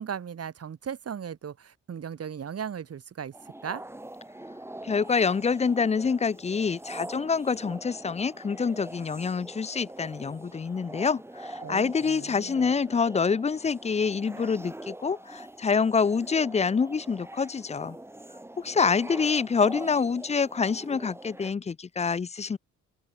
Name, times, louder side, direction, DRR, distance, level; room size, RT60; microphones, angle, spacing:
voice 1, 0.0-3.8 11.6-12.7, right 8 dB, 50° right, 7.6 m, -37 dB
sound 1, 3.3-21.5, right 1 dB, 10° right, 3.5 m, -44 dB
voice 2, 4.8-18.0 18.6-22.6, left 5 dB, 20° left, 0.6 m, -26 dB
open air
cardioid pair, 90°, 30 cm